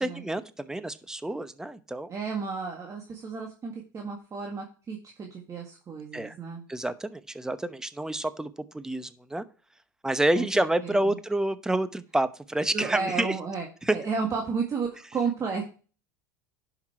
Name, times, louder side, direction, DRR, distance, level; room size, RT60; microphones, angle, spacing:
voice 1, 0.0-2.1 6.1-6.4 6.7-9.4 10.0-13.4 13.9-14.0, right 1 dB, 5° right, 12 dB, 0.9 m, -28 dB
voice 2, 2.1-6.6 10.4-11.2 12.7-13.7 13.9-15.7, right 5 dB, 30° right, 1 dB, 1.8 m, -33 dB
10.5 x 5.9 x 4.4 m, 0.37 s
hypercardioid pair, 90°, 11 cm